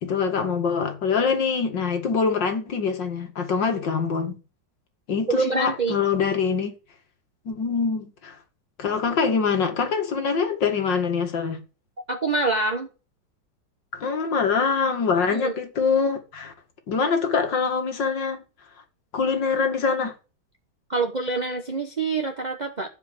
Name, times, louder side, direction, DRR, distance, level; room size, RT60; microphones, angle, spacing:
voice 1, 0.0-4.4 5.1-6.7 7.5-8.4 8.8-11.6 13.9-16.5 16.9-18.4 19.1-20.1, left 5 dB, 85° left, 2.7 m, -24 dB
voice 2, 5.3-6.0 12.1-12.9 15.3-15.6 20.9-22.9, right 3 dB, 30° right, 1.1 m, -25 dB
15.0 x 5.1 x 7.8 m
omnidirectional pair, 1.9 m